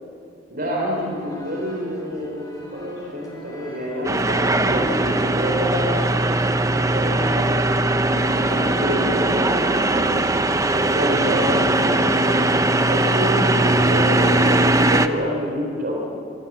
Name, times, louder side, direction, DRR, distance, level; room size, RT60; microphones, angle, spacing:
voice 1, 0.5-6.3 6.9-7.5 8.0-10.1 10.7-12.4 12.9-16.0, equal, 50° right, -1 dB, 4.1 m, -27 dB
sound 1, 0.9-6.3, equal, 20° left, 4.6 m, -45 dB
sound 2, 4.0-15.1, right 2 dB, 15° right, 0.8 m, -20 dB
sound 3, 5.1-14.7, equal, 45° left, 7.4 m, -42 dB
26.5 x 23.5 x 7.5 m, 2.6 s
head